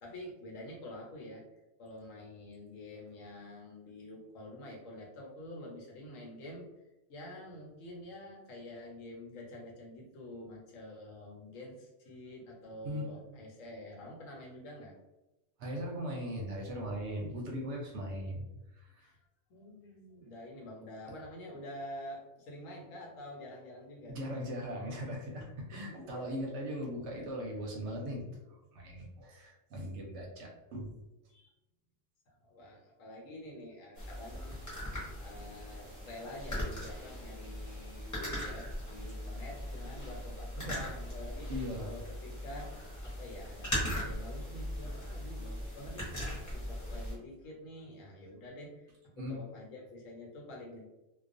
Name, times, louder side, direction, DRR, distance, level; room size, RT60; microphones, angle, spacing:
voice 1, 0.0-1.4 1.8-14.9 19.0-19.2 19.5-24.2 25.7-26.3 31.3-31.5 32.3-34.5 35.2-41.5 41.8-50.9, left 1 dB, 75° left, -1 dB, 1.1 m, -47 dB
voice 2, 15.6-18.4 18.7-19.1 24.1-28.2 28.5-30.9 41.4-41.9 49.2-49.4, equal, 70° right, 0 dB, 0.8 m, -39 dB
sound 1, 34.0-47.1, equal, 15° left, 0.7 m, -39 dB
2.3 x 2.3 x 2.5 m, 1.0 s
omnidirectional pair, 1.4 m